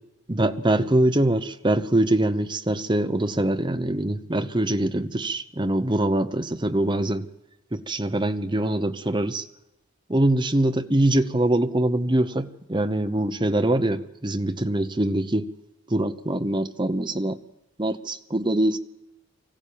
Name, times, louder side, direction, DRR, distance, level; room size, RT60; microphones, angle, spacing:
voice 1, 0.3-7.2 7.7-9.5 10.1-15.5 15.9-17.4 17.8-18.8, right 1 dB, 20° right, 8 dB, 0.9 m, -23 dB
24.0 x 15.5 x 8.7 m, 0.93 s
head